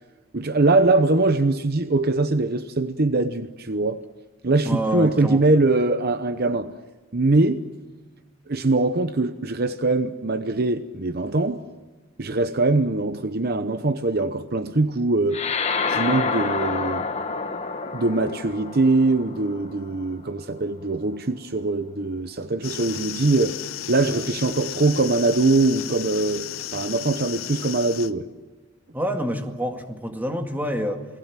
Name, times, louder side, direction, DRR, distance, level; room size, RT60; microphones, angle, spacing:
voice 1, 0.3-4.0 4.4-6.7 7.1-7.6 8.5-11.6 12.2-15.4 15.9-17.1 17.9-23.6 23.9-28.3, right 2 dB, 50° right, 0.9 m, -22 dB
voice 2, 4.7-5.4 28.9-31.1, equal, 10° right, 2.0 m, -27 dB
sound 1, 15.3-20.1, left 4 dB, 30° left, 1.4 m, -28 dB
sound 2, 22.6-28.1, left 10 dB, 90° left, 0.8 m, -34 dB
28.5 x 19.5 x 7.5 m
head